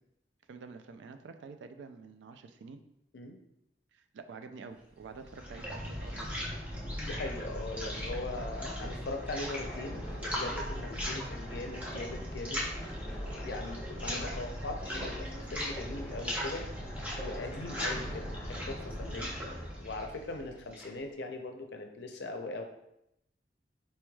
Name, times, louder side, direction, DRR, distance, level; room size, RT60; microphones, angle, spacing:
voice 1, 0.5-2.8 3.9-6.5 7.7-8.2 8.8-9.1, right 4 dB, 80° right, 8 dB, 0.3 m, -48 dB
sound 1, 5.0-21.0, equal, 10° right, 0.7 m, -38 dB
sound 2, 5.9-19.7, equal, 20° left, 0.9 m, -45 dB
voice 2, 7.0-12.6 13.4-16.7 17.1-19.3 19.8-22.6, left 2 dB, 70° left, 4 dB, 0.5 m, -40 dB
4.2 x 3.1 x 2.3 m, 0.81 s
head